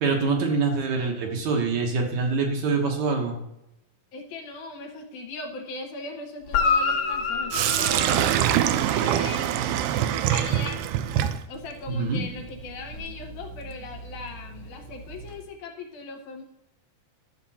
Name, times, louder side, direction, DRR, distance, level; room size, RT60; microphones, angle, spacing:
voice 1, 0.0-3.4 11.9-12.3, right 4 dB, 65° right, 1 dB, 2.4 m, -25 dB
voice 2, 4.1-10.8 11.5-16.4, left 3 dB, 70° left, 3 dB, 2.3 m, -39 dB
Guitar, 6.5-9.1 12.9-13.0, left 4 dB, 55° left, 2.1 m, -27 dB
Sink (filling or washing), 7.5-15.4, right 11 dB, 80° right, 1.9 m, -26 dB
12.5 x 6.9 x 4.2 m, 0.87 s
omnidirectional pair, 3.9 m